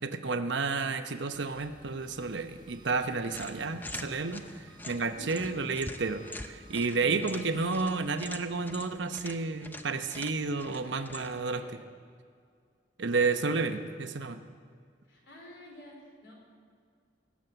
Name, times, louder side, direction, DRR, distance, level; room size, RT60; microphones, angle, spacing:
voice 1, 0.0-11.6 13.0-14.5, right 4 dB, 80° right, 9 dB, 0.9 m, -31 dB
Engine, 1.3-8.1, right 1 dB, 25° right, 1.0 m, -55 dB
sound 1, 3.3-11.5, left 2 dB, 10° left, 0.5 m, -45 dB
voice 2, 10.8-11.7 13.6-13.8 15.1-16.3, equal, 75° left, -1 dB, 4.1 m, -50 dB
18.5 x 7.3 x 7.9 m, 2.1 s
head